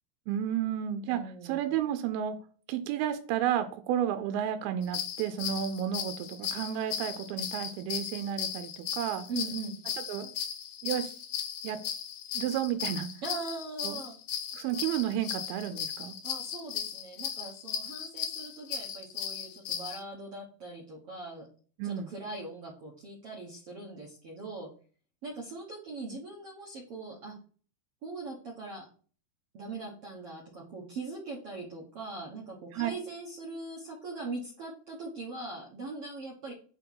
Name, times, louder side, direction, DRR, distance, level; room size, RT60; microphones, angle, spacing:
voice 1, 0.3-2.4 2.7-9.3 10.1-10.3 10.8-11.2 11.6-11.8 12.3-13.1 13.8-14.0 14.5-16.2 21.8-22.1 32.7-32.9, right 10 dB, 85° right, 8 dB, 2.5 m, -32 dB
voice 2, 1.1-1.6 9.3-9.7 13.2-14.2 16.2-21.5 21.8-24.7 25.2-27.3 28.0-28.9 29.5-36.5, right 3 dB, 60° right, -3 dB, 1.5 m, -41 dB
sound 1, 4.8-20.0, left 9 dB, 75° left, 2.1 m, -37 dB
5.6 x 4.5 x 5.6 m, 0.41 s
omnidirectional pair, 4.3 m